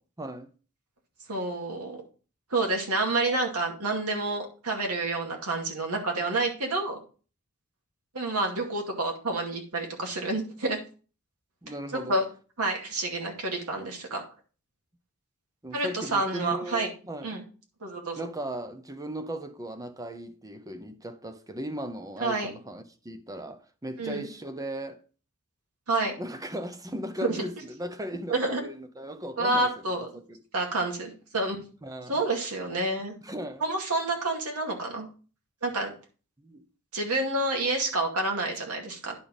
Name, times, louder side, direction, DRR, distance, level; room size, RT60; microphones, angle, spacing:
voice 1, 0.2-0.5 11.6-12.2 15.6-17.4 18.2-25.0 26.2-30.4 31.8-32.2 33.2-33.6 36.4-36.6, right 1 dB, 15° right, 0.9 m, -37 dB
voice 2, 1.3-2.0 2.5-7.0 8.1-10.8 11.9-12.2 12.6-14.2 15.7-16.9 17.2-17.4 17.8-18.2 22.2-22.5 24.0-24.3 25.9-26.2 27.2-27.4 28.3-28.6 29.4-30.2 30.5-31.6 32.1-33.1 33.6-35.1 35.6-35.9 36.9-39.1, right 2 dB, 85° right, 2.3 m, -28 dB
10.0 x 4.6 x 5.3 m
head